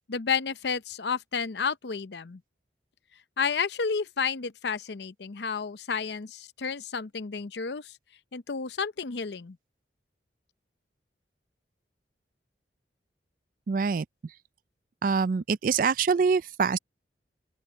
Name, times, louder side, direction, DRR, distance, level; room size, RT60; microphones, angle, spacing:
voice 1, 0.1-2.4 3.4-7.9 8.3-9.6, left 5 dB, 70° left, 0.7 m, -31 dB
voice 2, 13.7-14.3 15.0-16.8, right 5 dB, 50° right, 0.3 m, -25 dB
open air
head